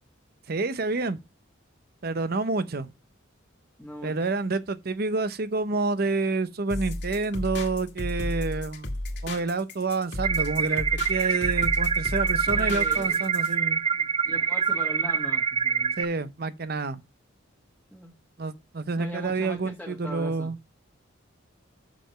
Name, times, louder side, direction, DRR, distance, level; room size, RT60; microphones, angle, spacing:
voice 1, 0.5-1.2 2.0-2.9 4.0-8.9 9.2-13.8 16.0-17.0 18.4-20.6, right 3 dB, 50° right, 0.7 m, -28 dB
voice 2, 3.8-4.1 12.5-13.3 13.9-16.0 17.9-18.1 19.0-20.5, equal, ahead, 1.5 m, -40 dB
sound 1, 6.7-13.5, left 1 dB, 55° left, 2.0 m, -33 dB
sound 2, 10.2-16.0, right 6 dB, 30° right, 0.4 m, -25 dB
6.7 x 6.1 x 5.6 m
head